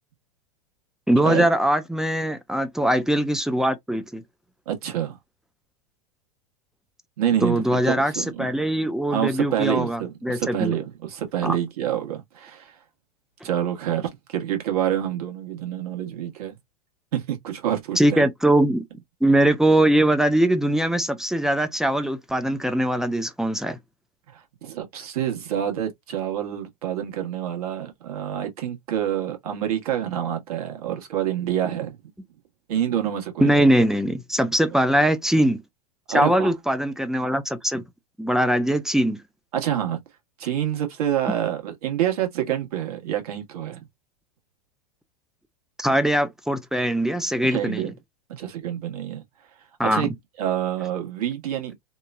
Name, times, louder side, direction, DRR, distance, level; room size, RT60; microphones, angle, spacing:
voice 1, 1.1-4.2 7.4-10.8 11.4-11.6 18.0-18.8 19.2-23.8 33.4-35.6 36.1-37.8 38.2-39.2 45.8-47.9 49.8-50.1, right 1 dB, ahead, 0.3 m, -21 dB
voice 2, 4.7-5.2 7.2-8.5 9.1-12.8 13.4-16.6 17.1-18.2 24.3-32.0 32.7-33.6 36.1-36.5 39.5-40.0 40.4-43.9 47.5-47.9 48.3-49.2 49.8-50.1 50.4-51.8, right 10 dB, 70° right, 1.2 m, -27 dB
2.9 x 2.2 x 2.4 m
hypercardioid pair, 110°, 20 cm